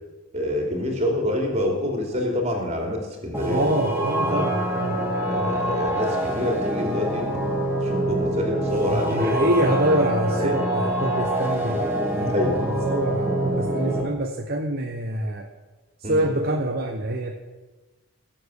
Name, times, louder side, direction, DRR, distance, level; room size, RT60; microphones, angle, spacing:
voice 1, 0.3-3.7 4.2-4.5 5.2-7.4 7.8-9.5 10.4-10.5 12.3-12.6 16.0-16.2, left 1 dB, 30° right, 1 dB, 3.0 m, -27 dB
sound 1, 3.3-14.0, right 1 dB, 10° right, 2.4 m, -25 dB
voice 2, 3.4-5.1 5.3-5.6 8.8-15.5 16.0-17.3, right 1 dB, 45° right, 3 dB, 1.0 m, -26 dB
19.0 x 7.7 x 6.6 m, 1.2 s
head